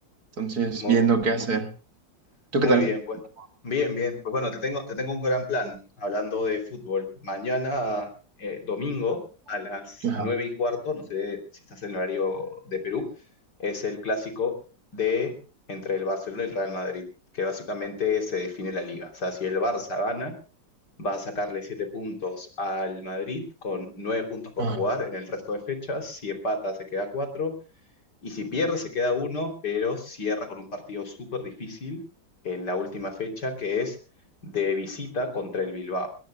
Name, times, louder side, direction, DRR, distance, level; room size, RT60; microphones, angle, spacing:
voice 1, 0.4-1.7 2.5-2.9 10.0-10.3 24.6-24.8, right 4 dB, 55° right, 7 dB, 2.3 m, -23 dB
voice 2, 2.6-3.2 3.6-8.1 8.4-9.2 9.5-11.4 11.7-13.1 13.6-14.5 14.9-15.3 15.7-17.0 17.3-20.3 21.0-27.5 28.2-32.0 32.4-34.0 34.4-36.1, left 3 dB, 60° left, 5 dB, 3.8 m, -29 dB
23.0 x 20.5 x 2.3 m, 0.35 s
omnidirectional pair, 2.0 m